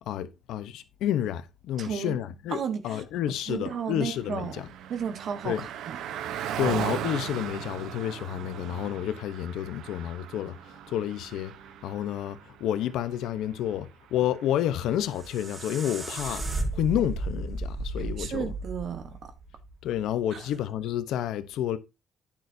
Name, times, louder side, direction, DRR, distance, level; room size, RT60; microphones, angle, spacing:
voice 1, 0.0-4.7 5.4-5.7 6.6-11.5 11.8-16.5 16.7-18.5 19.8-21.8, left 11 dB, 90° left, 0.9 m, -30 dB
voice 2, 1.8-2.2 2.5-3.0 3.5-4.6 4.9-6.0 18.2-19.3 20.3-20.4, right 7 dB, 60° right, 1.3 m, -33 dB
Car passing by, 3.6-15.4, right 10 dB, 85° right, 0.9 m, -38 dB
sound 1, 14.9-19.9, right 2 dB, 35° right, 3.8 m, -34 dB
10.5 x 9.1 x 2.7 m
cardioid pair, 100°, 0 cm